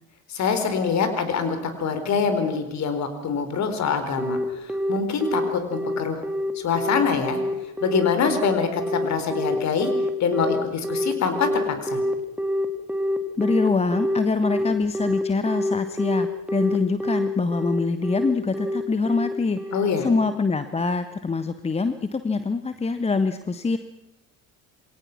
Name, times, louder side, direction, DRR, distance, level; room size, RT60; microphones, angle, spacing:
voice 1, 0.3-6.2 6.5-7.4 7.8-9.9 10.2-11.5 11.8-12.0 19.7-20.1, left 5 dB, 40° left, 9 dB, 4.5 m, -24 dB
Telephone, 4.2-20.4, equal, 5° right, 2.3 m, -26 dB
voice 2, 13.4-19.6 20.0-23.8, left 4 dB, 15° left, 11 dB, 1.2 m, -24 dB
28.0 x 22.5 x 6.1 m, 0.89 s
figure-of-eight pair, 60°, 41 cm